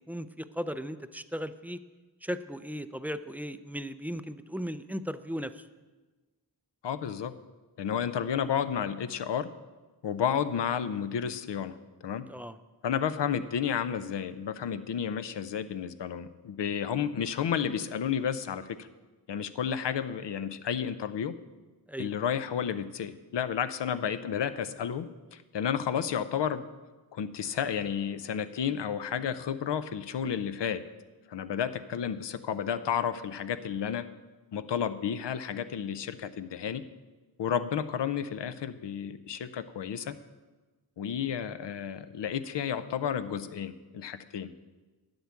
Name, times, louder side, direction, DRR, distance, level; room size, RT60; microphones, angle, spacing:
voice 1, 0.0-1.8 2.2-5.6 12.3-12.6 21.9-22.1, equal, 5° right, 11 dB, 0.4 m, -36 dB
voice 2, 6.8-7.3 7.8-9.5 10.0-11.8 12.0-12.3 12.8-18.9 19.3-21.3 22.0-26.6 27.1-30.8 31.3-34.1 34.5-36.8 37.4-40.2 41.0-44.5, left 8 dB, 75° left, 12 dB, 0.7 m, -31 dB
9.5 x 7.9 x 7.1 m, 1.2 s
wide cardioid pair, 100°, 42 cm